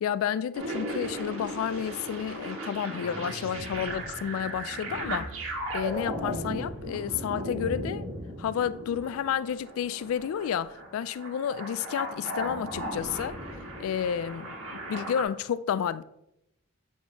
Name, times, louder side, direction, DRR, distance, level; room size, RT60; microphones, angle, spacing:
voice 1, 0.0-8.1 8.4-13.4 13.8-14.5 14.9-16.0, left 8 dB, 85° left, 0.3 m, -31 dB
sound 1, 0.5-15.2, right 1 dB, 85° right, 1.4 m, -36 dB
8.4 x 4.3 x 2.9 m
head